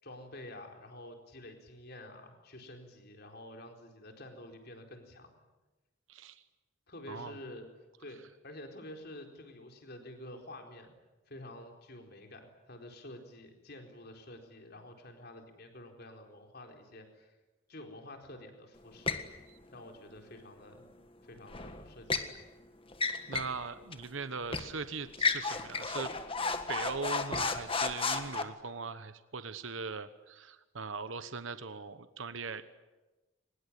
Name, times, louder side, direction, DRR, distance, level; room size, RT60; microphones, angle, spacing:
voice 1, 0.0-5.4 6.9-7.7 8.0-10.9 11.3-17.4 17.7-19.2 19.7-20.8 21.2-22.4, left 1 dB, 50° left, 4 dB, 4.3 m, -49 dB
voice 2, 6.1-6.4 7.1-7.4 23.3-26.1 26.7-32.8, right 4 dB, 75° right, 12 dB, 1.1 m, -40 dB
sound 1, 19.1-19.3 21.5-22.3 22.9-23.6 23.9-24.0 24.5-24.7 25.1-28.4, left 4 dB, 25° left, 1.7 m, -33 dB
24.0 x 21.0 x 10.0 m, 1.1 s
head